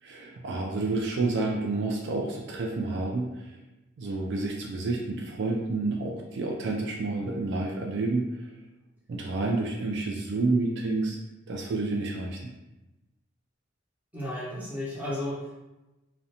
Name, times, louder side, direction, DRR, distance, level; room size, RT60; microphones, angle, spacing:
voice 1, 0.0-3.6 4.0-8.5 9.1-11.2 11.5-12.5, right 3 dB, 60° right, 0 dB, 0.3 m, -29 dB
voice 2, 14.1-15.6, left 1 dB, 10° right, -8 dB, 0.8 m, -33 dB
2.4 x 2.1 x 2.7 m, 1.0 s
head